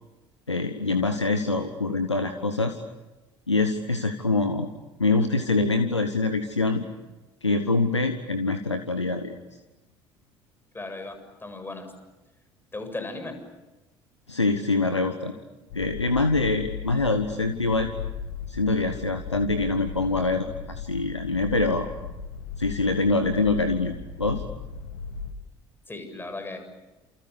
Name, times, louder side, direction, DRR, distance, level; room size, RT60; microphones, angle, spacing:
voice 1, 0.5-2.8 3.5-4.7 5.0-6.8 7.4-9.4 14.3-15.3 15.7-17.9 18.5-21.9 22.6-24.4, left 3 dB, 85° left, 8 dB, 1.3 m, -25 dB
voice 2, 10.7-11.1 11.4-11.9 12.7-13.3 25.9-26.6, left 2 dB, 15° left, 7 dB, 7.5 m, -36 dB
sound 1, 15.7-25.3, left 6 dB, 65° left, 2.2 m, -37 dB
29.5 x 28.5 x 6.9 m, 1.1 s
figure-of-eight pair, 60°, 14 cm